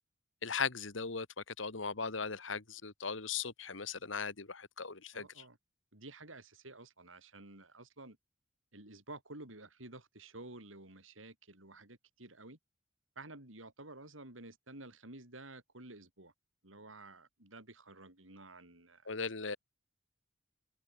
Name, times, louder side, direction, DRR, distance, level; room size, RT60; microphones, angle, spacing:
voice 1, 0.4-1.3 1.6-5.3 19.1-19.6, left 5 dB, 75° left, 1.8 m, -38 dB
voice 2, 5.1-5.6 5.9-8.2 8.7-12.6 13.2-16.3 16.6-19.1, right 2 dB, 90° right, 7.0 m, -52 dB
head